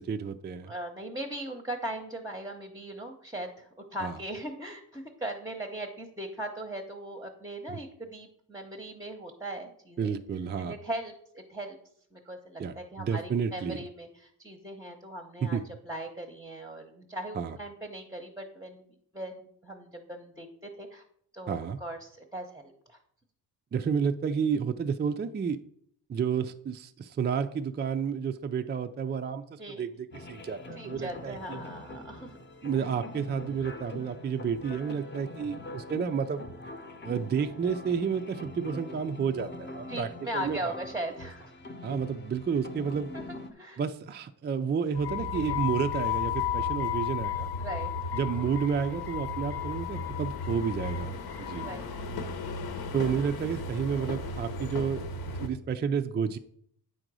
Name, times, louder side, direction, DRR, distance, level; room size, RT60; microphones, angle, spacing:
voice 1, 0.0-0.7 4.0-4.1 7.7-7.8 10.0-10.7 12.6-13.8 15.4-15.6 17.3-17.6 21.5-21.8 23.7-25.6 26.1-31.6 32.6-36.4 37.0-40.7 41.8-43.1 43.8-47.5 48.1-51.7 52.9-55.0 55.4-56.4, right 6 dB, 25° right, 7 dB, 0.4 m, -31 dB
voice 2, 0.6-10.1 10.6-11.8 12.1-15.6 15.8-19.4 19.6-21.0 21.3-23.0 29.6-29.8 30.8-32.3 39.9-41.5 43.1-43.2 43.5-43.8 45.3-45.5 47.6-47.9 51.6-51.9, right 1 dB, 10° right, 3 dB, 0.8 m, -39 dB
sound 1, 30.1-43.5, left 2 dB, 25° left, 0.8 m, -43 dB
sound 2, 45.0-55.5, left 5 dB, 65° left, 1.0 m, -33 dB
9.0 x 3.8 x 6.1 m, 0.67 s
cardioid pair, 120°, 40 cm